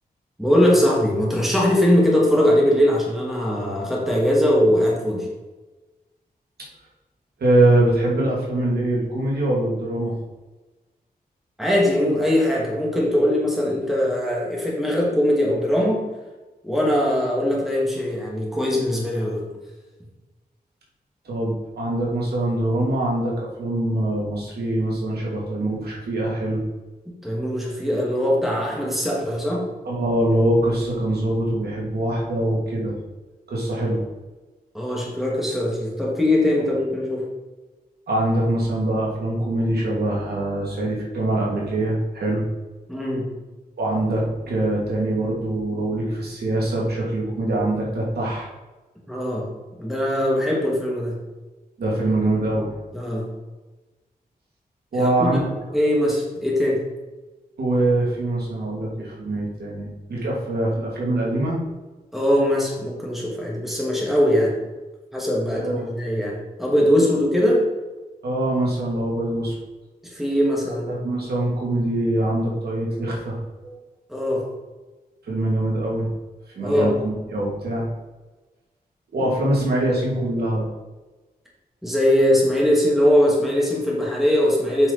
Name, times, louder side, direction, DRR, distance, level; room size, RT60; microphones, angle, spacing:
voice 1, 0.4-5.3 11.6-16.0 16.6-19.4 27.2-29.7 34.7-37.3 42.9-43.3 49.1-49.5 49.8-51.2 52.9-53.3 54.9-55.4 55.7-56.8 62.1-64.5 65.1-67.7 70.0-70.9 74.1-74.5 76.6-76.9 79.2-79.3 81.8-84.9, equal, ahead, -4 dB, 2.4 m, -21 dB
voice 2, 7.4-10.1 21.2-26.6 29.8-32.9 33.5-34.0 38.1-42.4 43.8-48.5 51.8-52.7 54.9-55.5 57.6-61.6 65.5-65.9 68.2-69.6 70.9-73.4 73.6-73.8 75.3-76.1 76.5-77.9 79.1-80.7, right 1 dB, 85° right, -4 dB, 2.5 m, -23 dB
8.1 x 5.6 x 4.1 m, 1.2 s
wide cardioid pair, 115°, 16 cm